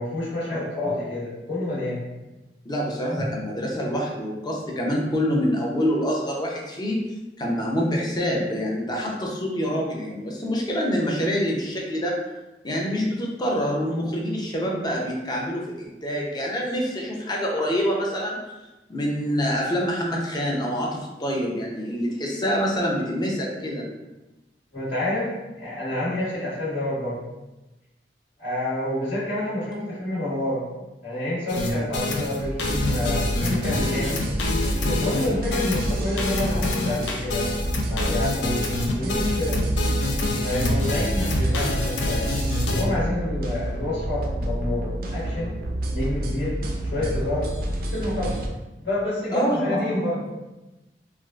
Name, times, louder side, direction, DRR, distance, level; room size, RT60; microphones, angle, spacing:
voice 1, 0.0-2.0 3.1-3.2 24.7-25.3 25.6-27.2 28.4-30.6 31.0-34.2 34.9-38.7 39.0-39.6 40.4-42.3 42.7-45.5 45.9-46.5 46.9-47.5 47.9-48.4 48.8-50.2, left 1 dB, 70° left, -11 dB, 1.4 m, -28 dB
voice 2, 2.6-7.0 7.4-12.1 12.6-18.4 18.9-23.8 49.3-49.7, equal, 25° left, -2 dB, 0.6 m, -26 dB
sound 1, 31.5-42.8, left 2 dB, 90° left, 0.5 m, -27 dB
sound 2, 32.4-48.5, right 1 dB, 55° right, 0.4 m, -28 dB
3.4 x 2.4 x 2.3 m, 1.1 s
head